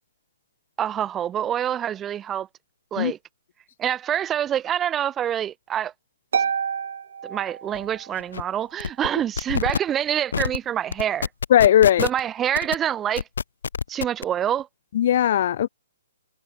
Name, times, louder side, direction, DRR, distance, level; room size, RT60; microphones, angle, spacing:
voice 1, 0.8-2.5 2.9-3.2 3.8-5.9 7.2-11.3 12.0-13.2 13.9-14.7, right 10 dB, 15° right, 1.0 m, -26 dB
Harp, 6.3-8.2, right 7 dB, 65° right, 1.1 m, -28 dB
sound 1, 7.7-7.9 8.2-8.4 8.8-9.1 9.4-9.8 10.3-10.6 10.9-12.2 12.6-12.8 13.2-14.2, left 6 dB, 75° left, 1.1 m, -26 dB
voice 2, 11.5-12.1 14.9-15.7, left 11 dB, 45° left, 0.3 m, -17 dB
hypercardioid pair, 160°, 0 cm